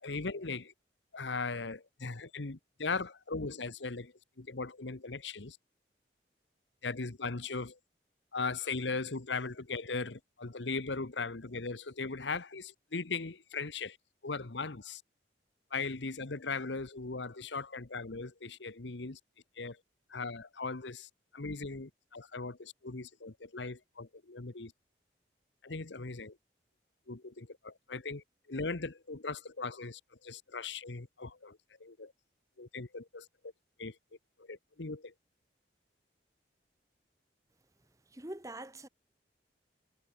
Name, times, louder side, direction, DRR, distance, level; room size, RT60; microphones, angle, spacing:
voice 1, 0.0-0.7 1.1-5.6 6.8-7.8 8.3-14.0 14.2-15.0 15.7-19.2 19.6-19.8 20.1-24.7 25.6-26.4 27.1-32.1 32.6-33.5 33.8-34.0 34.4-35.1, left 4 dB, 80° left, 1.2 m, -39 dB
voice 2, 38.1-38.9, right 1 dB, 20° right, 1.2 m, -43 dB
head